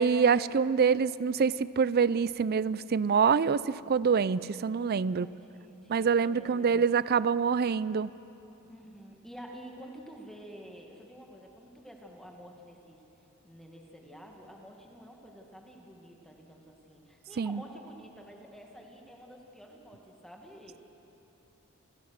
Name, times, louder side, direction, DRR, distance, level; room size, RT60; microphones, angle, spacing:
voice 1, 0.0-5.3 5.9-8.1 17.4-17.6, right 6 dB, 45° right, 18 dB, 0.4 m, -26 dB
voice 2, 5.1-6.9 8.7-13.0 13.4-20.8, equal, ahead, 0 dB, 2.1 m, -50 dB
29.5 x 15.5 x 6.5 m, 2.9 s
head